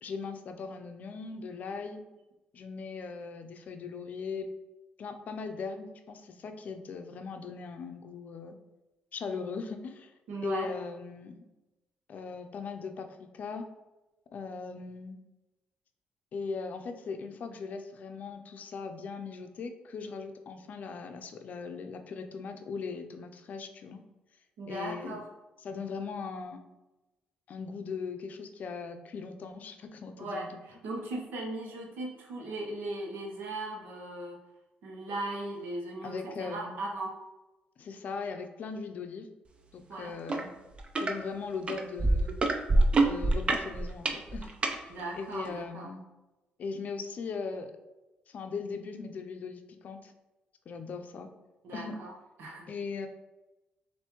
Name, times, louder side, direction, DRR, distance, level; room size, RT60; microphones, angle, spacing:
voice 1, 0.0-2.0 2.5-4.5 5.0-8.6 9.1-10.1 10.4-11.4 12.1-13.6 14.3-15.2 16.3-24.0 24.7-25.2 25.6-26.6 27.5-30.6 36.0-36.7 37.8-39.3 39.7-40.5 41.0-42.3 43.0-46.0 46.6-47.7 48.3-50.1 50.7-51.3 51.7-52.0 52.7-53.1, left 5 dB, 55° left, 6 dB, 0.5 m, -39 dB
voice 2, 10.3-10.7 24.6-25.2 30.2-34.4 34.8-37.1 39.9-40.1 44.9-45.9 51.6-52.1 52.4-52.7, right 2 dB, 80° right, 0 dB, 1.0 m, -38 dB
sound 1, 40.3-40.4 40.8-41.1 41.7-44.8 45.5-45.6, right 2 dB, 35° right, 0.6 m, -25 dB
6.8 x 2.6 x 3.0 m, 1.1 s
cardioid pair, 95°, 3 cm